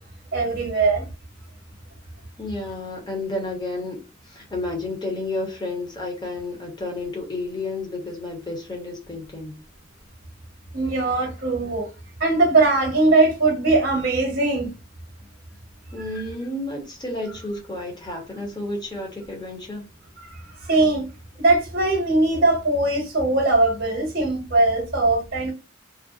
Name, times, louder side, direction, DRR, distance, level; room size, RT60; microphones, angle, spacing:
voice 1, 0.3-1.1 10.7-11.9 12.2-14.8 20.6-21.0 21.4-25.5, right 2 dB, 50° right, 0.8 m, -20 dB
voice 2, 2.4-9.6 15.9-19.9, left 2 dB, 20° left, 0.8 m, -31 dB
2.5 x 2.0 x 2.4 m
head